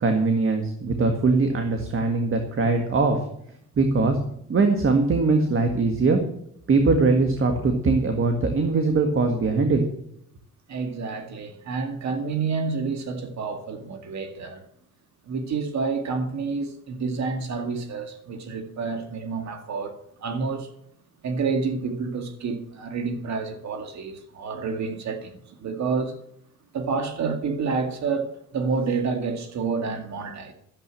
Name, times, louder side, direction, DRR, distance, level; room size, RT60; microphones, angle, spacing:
voice 1, 0.0-3.2 3.8-4.2 4.5-6.2 6.7-9.8, right 3 dB, 45° right, 1.8 m, -21 dB
voice 2, 10.7-14.6 15.3-20.7 21.2-26.2 26.7-30.5, right 4 dB, 65° right, 2.1 m, -29 dB
12.5 x 7.8 x 7.6 m
cardioid pair, 90°, 30 cm